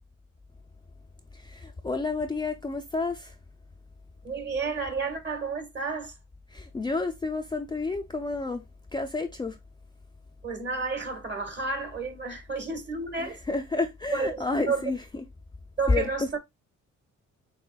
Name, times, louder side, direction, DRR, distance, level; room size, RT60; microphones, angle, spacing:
voice 1, 1.4-3.3 6.5-8.6 8.9-9.6 13.2-15.0 15.9-16.1, left 3 dB, 15° left, 0.4 m, -30 dB
voice 2, 4.2-6.1 10.4-13.4 14.1-14.9 15.8-16.4, right 4 dB, 35° right, 1.5 m, -31 dB
5.7 x 3.1 x 2.2 m
cardioid pair, 90°, 30 cm